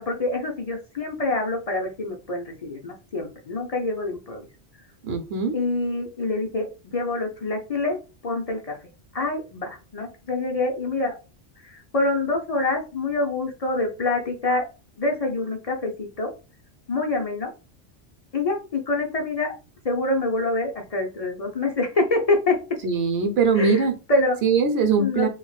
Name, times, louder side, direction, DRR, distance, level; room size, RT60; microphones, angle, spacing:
voice 1, 0.0-4.5 5.5-8.0 8.2-8.8 9.1-11.1 11.6-14.7 15.0-16.3 16.9-17.5 18.3-19.5 19.8-22.8 23.6-24.4 25.0-25.3, left 2 dB, 45° left, 2 dB, 0.5 m, -26 dB
voice 2, 5.0-5.5 22.8-23.9 24.4-25.3, right 4 dB, 65° right, 6 dB, 0.9 m, -21 dB
3.4 x 3.2 x 2.3 m, 0.31 s
omnidirectional pair, 1.2 m